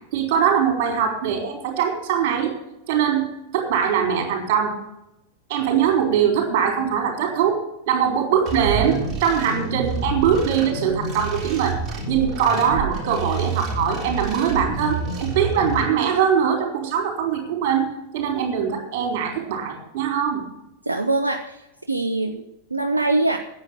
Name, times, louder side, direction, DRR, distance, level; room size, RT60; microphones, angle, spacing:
voice 1, 0.1-2.5 2.9-3.3 3.5-4.8 5.5-7.6 7.9-11.8 12.1-17.9 18.1-20.4, right 8 dB, 50° right, 3 dB, 4.1 m, -22 dB
sound 1, 8.5-15.8, right 3 dB, 25° right, 3.9 m, -28 dB
voice 2, 20.9-21.6 21.9-22.4 22.7-23.4, right 2 dB, 80° right, 5 dB, 0.8 m, -22 dB
9.7 x 8.7 x 8.5 m, 0.91 s
figure-of-eight pair, 90°, 0 cm